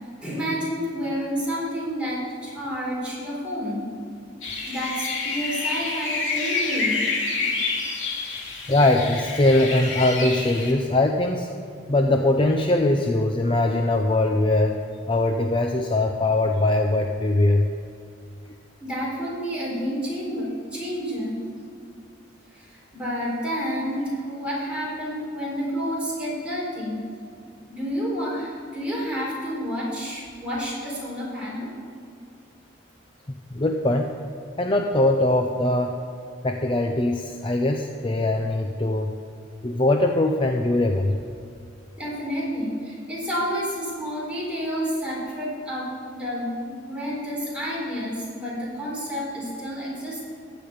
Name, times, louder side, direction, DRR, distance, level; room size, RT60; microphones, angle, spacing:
voice 1, 0.2-3.9 4.7-7.0 18.8-21.4 22.5-27.0 27.7-31.7 42.0-50.2, equal, 5° right, -6 dB, 4.0 m, -29 dB
sound 1, 4.4-10.7, left 3 dB, 85° left, 2.5 m, -28 dB
voice 2, 8.7-11.5 11.9-14.8 15.1-17.7 33.5-34.1 34.6-35.9 36.4-39.1 39.6-41.1, left 2 dB, 25° left, 3 dB, 0.6 m, -21 dB
15.0 x 5.2 x 9.3 m, 2.4 s
head